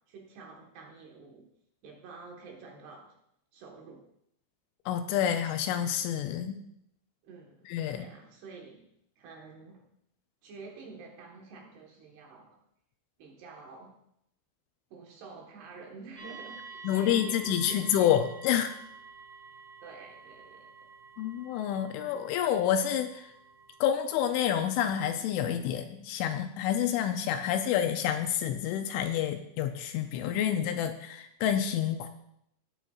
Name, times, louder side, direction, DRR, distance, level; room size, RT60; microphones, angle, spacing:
voice 1, 0.1-1.5 1.8-3.1 3.5-4.1 7.2-8.9 9.2-9.8 10.4-12.6 13.2-14.0 14.9-18.2 19.8-20.7, right 4 dB, 65° right, -1 dB, 2.9 m, -48 dB
voice 2, 4.9-6.6 7.7-8.1 16.8-18.7 21.2-23.3 23.8-32.1, left 10 dB, 85° left, 7 dB, 2.9 m, -28 dB
sound 1, 16.2-24.8, right 4 dB, 50° right, 0.9 m, -50 dB
19.0 x 7.7 x 2.4 m, 0.75 s
omnidirectional pair, 5.8 m